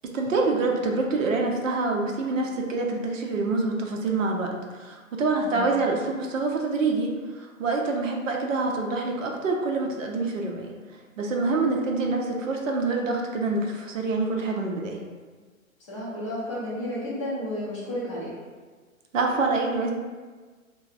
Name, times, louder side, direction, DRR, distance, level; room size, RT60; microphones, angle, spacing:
voice 1, 0.0-10.7 11.2-15.0 19.1-19.9, right 3 dB, 65° right, 1 dB, 0.5 m, -26 dB
voice 2, 15.9-18.4, left 1 dB, 25° left, -8 dB, 0.4 m, -32 dB
3.0 x 2.0 x 2.4 m, 1.4 s
figure-of-eight pair, 125°, 42 cm